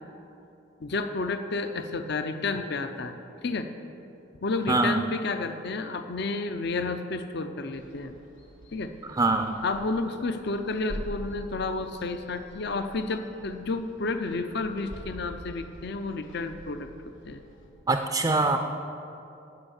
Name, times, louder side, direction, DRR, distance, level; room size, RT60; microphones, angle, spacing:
voice 1, 0.8-3.1 3.4-3.7 4.4-8.1 8.7-8.9 9.6-16.9 17.2-17.4, left 3 dB, 60° left, 8 dB, 0.7 m, -31 dB
voice 2, 4.7-5.0 9.2-9.5 17.9-18.6, right 3 dB, 20° right, 5 dB, 0.5 m, -23 dB
sound 1, 7.7-17.7, equal, 90° left, 1.9 m, -45 dB
16.0 x 5.7 x 7.1 m, 2.7 s
head